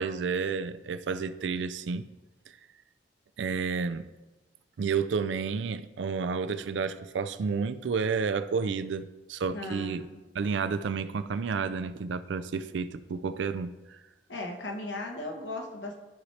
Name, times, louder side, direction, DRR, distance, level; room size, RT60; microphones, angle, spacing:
voice 1, 0.0-2.1 3.4-4.0 4.8-10.1 10.3-14.0, right 5 dB, 80° right, 13 dB, 0.4 m, -31 dB
voice 2, 9.5-10.1 14.3-16.0, left 2 dB, 75° left, 1 dB, 1.1 m, -37 dB
12.5 x 4.2 x 3.2 m, 1.1 s
head